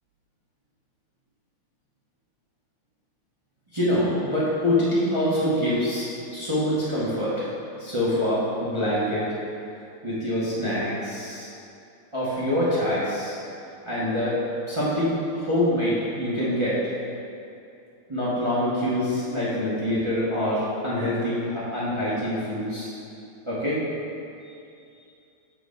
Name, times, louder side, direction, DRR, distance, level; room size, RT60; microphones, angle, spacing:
voice 1, 3.7-6.0 6.3-7.5 7.8-9.4 10.0-11.5 12.1-13.4 13.9-14.4 14.7-16.8 18.1-22.9 23.5-23.8, left 1 dB, 45° right, -9 dB, 0.4 m, -25 dB
5.9 x 3.6 x 5.2 m, 2.6 s
omnidirectional pair, 2.4 m